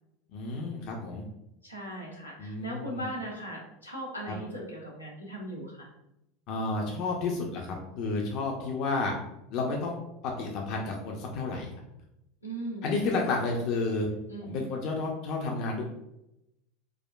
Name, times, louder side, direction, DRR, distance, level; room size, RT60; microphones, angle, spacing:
voice 1, 0.3-1.2 2.4-3.0 4.3-4.4 6.5-9.1 9.5-9.9 10.4-11.7 12.8-14.1 14.4-15.9, left 3 dB, 50° left, 0 dB, 0.5 m, -31 dB
voice 2, 1.6-5.9 12.4-12.9 14.3-14.6, right 1 dB, 90° left, -3 dB, 0.9 m, -39 dB
4.6 x 2.1 x 2.2 m, 0.86 s
figure-of-eight pair, 80°, 0 cm